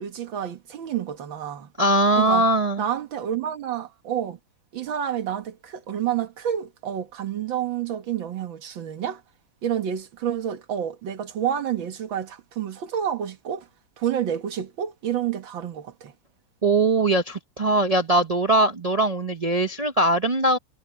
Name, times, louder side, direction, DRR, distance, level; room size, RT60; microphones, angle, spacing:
voice 1, 0.0-1.7 2.2-2.5 2.8-4.4 4.7-9.2 9.6-13.7 14.0-16.1, right 9 dB, 90° right, 2.2 m, -29 dB
voice 2, 1.8-2.8 16.6-20.6, right 2 dB, 55° right, 0.4 m, -21 dB
omnidirectional pair, 2.1 m